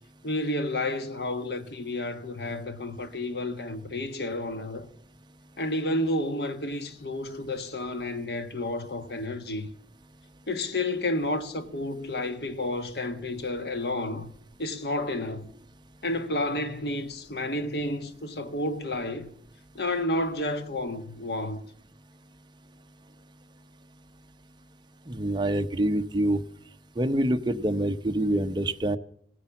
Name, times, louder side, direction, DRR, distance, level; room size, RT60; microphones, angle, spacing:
voice 1, 0.2-4.9 5.6-9.7 10.5-14.3 14.6-15.5 16.0-19.3 19.7-21.6, left 1 dB, 65° left, 1.5 m, -31 dB
voice 2, 25.1-26.4 27.0-29.0, right 1 dB, 25° right, 0.8 m, -26 dB
16.5 x 10.0 x 7.1 m
head